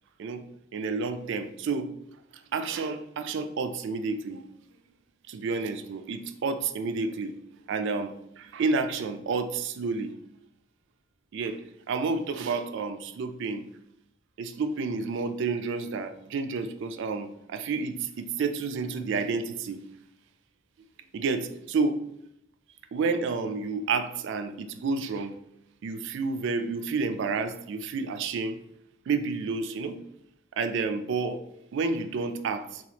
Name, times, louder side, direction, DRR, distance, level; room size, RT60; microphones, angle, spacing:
voice 1, 0.7-1.9 2.5-4.4 5.3-7.3 7.7-10.1 11.3-11.6 11.9-13.7 14.4-19.8 21.1-22.0 22.9-25.3 25.8-28.6 29.1-30.0 30.6-31.4 31.7-32.8, right 4 dB, 65° right, 0.3 m, -30 dB
2.8 x 2.4 x 4.1 m
head